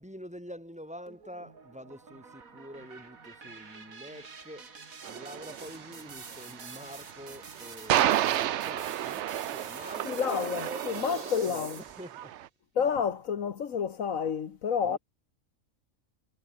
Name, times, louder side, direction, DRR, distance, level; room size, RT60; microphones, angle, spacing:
voice 1, 0.0-4.7 5.0-12.4 12.8-12.9 14.8-15.0, equal, 5° right, 4.5 m, -46 dB
sound 1, 1.1-12.2, right 5 dB, 90° right, 2.9 m, -47 dB
sound 2, 5.0-12.5, right 12 dB, 65° right, 0.8 m, -31 dB
voice 2, 10.0-11.8 12.7-15.0, left 7 dB, 75° left, 1.6 m, -29 dB
omnidirectional pair, 1.4 m